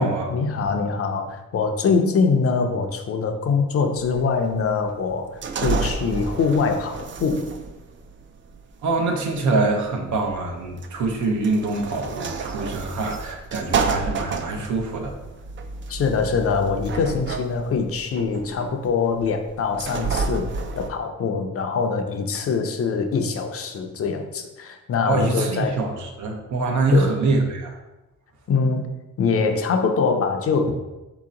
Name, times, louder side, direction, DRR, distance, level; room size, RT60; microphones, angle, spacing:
voice 1, 0.0-5.3 5.6-7.5 15.9-20.5 20.8-25.8 26.9-27.1 28.5-30.7, left 5 dB, 50° left, 5 dB, 0.5 m, -23 dB
sound 1, 4.0-20.9, right 4 dB, 40° right, 0.4 m, -31 dB
voice 2, 8.8-15.2 25.0-27.8 30.6-30.7, right 3 dB, 75° right, 2 dB, 0.8 m, -24 dB
4.2 x 2.9 x 3.7 m, 1.0 s
cardioid pair, 125°, 30 cm